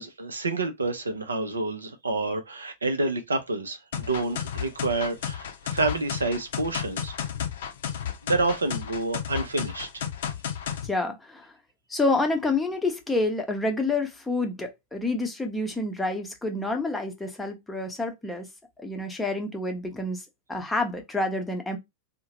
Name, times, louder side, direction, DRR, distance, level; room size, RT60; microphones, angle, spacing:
voice 1, 0.0-7.2 8.2-10.0, right 2 dB, 75° right, 0.5 m, -28 dB
sound 1, 3.9-10.9, left 8 dB, 60° left, 0.5 m, -32 dB
voice 2, 10.8-11.5 11.9-18.5 18.8-20.2 20.5-21.8, left 2 dB, 10° left, 0.7 m, -28 dB
2.7 x 2.1 x 2.8 m
figure-of-eight pair, 90°, 0 cm